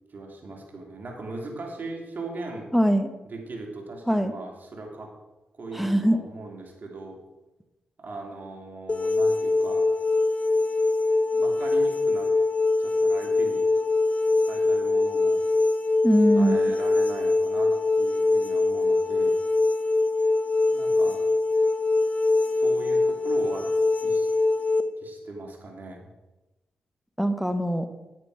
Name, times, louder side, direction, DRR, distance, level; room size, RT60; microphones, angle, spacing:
voice 1, 0.1-2.7 3.2-5.1 5.6-7.2 8.0-9.9 11.3-12.3 12.8-13.7 14.5-15.5 16.4-19.4 20.7-21.2 22.5-23.7 24.0-24.3 25.0-26.1, right 2 dB, 55° right, 1 dB, 3.0 m, -39 dB
voice 2, 2.7-3.1 4.1-4.3 5.7-6.2 16.0-16.6 27.2-27.9, equal, ahead, 9 dB, 1.3 m, -21 dB
sound 1, 8.9-24.8, left 2 dB, 35° left, 0.9 m, -23 dB
9.7 x 9.6 x 4.9 m, 1.0 s
supercardioid pair, 50°, 4 cm